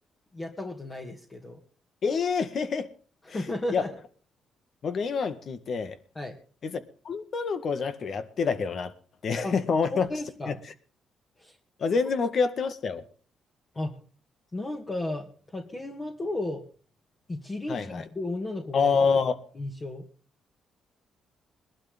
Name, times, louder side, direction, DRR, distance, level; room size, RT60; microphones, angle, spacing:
voice 1, 0.3-1.6 3.2-3.9 6.1-6.4 9.4-9.5 9.9-10.6 11.4-11.5 13.7-13.9 14.5-16.6 17.3-19.2 19.6-20.0, left 2 dB, 30° left, 0 dB, 2.4 m, -34 dB
voice 2, 2.0-2.9 3.7-3.8 4.8-5.9 6.6-6.8 7.0-8.9 9.2-10.1 10.5-10.6 11.8-13.0 17.7-18.0 18.7-19.4, left 5 dB, 55° left, 10 dB, 1.8 m, -26 dB
22.0 x 12.0 x 3.6 m, 0.41 s
cardioid pair, 90°, 0 cm